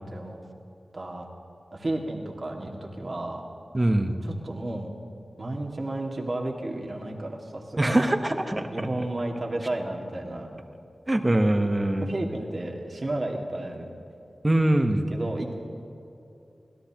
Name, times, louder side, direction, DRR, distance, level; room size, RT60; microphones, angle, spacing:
voice 1, 0.1-0.4 0.9-1.3 1.7-3.4 4.2-4.9 5.4-8.1 8.7-10.5 12.0-13.9 15.1-15.6, right 1 dB, 50° right, 0 dB, 2.1 m, -32 dB
voice 2, 3.7-4.2 7.8-8.9 11.1-12.1 14.4-15.1, right 1 dB, 25° right, 6 dB, 1.1 m, -23 dB
25.0 x 17.5 x 3.0 m, 2.8 s
wide cardioid pair, 70°, 0 cm